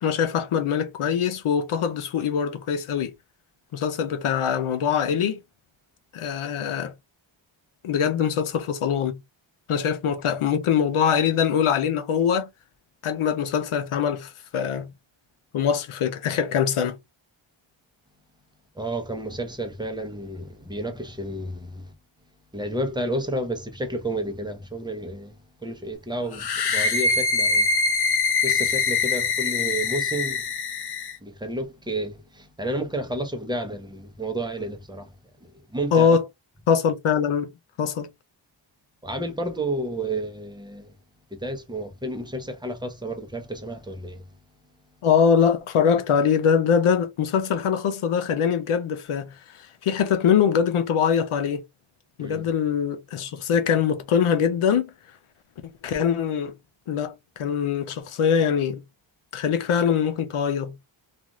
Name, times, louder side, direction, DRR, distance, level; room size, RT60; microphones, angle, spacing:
voice 1, 0.0-3.1 3.7-5.4 6.1-6.9 7.8-9.2 9.7-12.5 13.0-14.9 15.5-17.0 35.9-36.3 36.7-37.5 37.8-38.1 45.0-49.4 49.8-51.6 52.2-54.9 55.6-56.5 56.9-58.8 59.3-60.7, left 7 dB, 85° left, 0.8 m, -23 dB
voice 2, 18.8-21.8 22.5-25.3 25.6-26.4 26.7-27.7 28.4-30.4 31.2-32.2 32.6-35.0 35.7-36.2 39.0-40.9 41.4-44.2 52.2-52.5, right 1 dB, 10° right, 0.7 m, -31 dB
sound 1, 26.3-31.2, left 4 dB, 50° left, 0.6 m, -23 dB
2.6 x 2.4 x 3.0 m
wide cardioid pair, 100°, 49 cm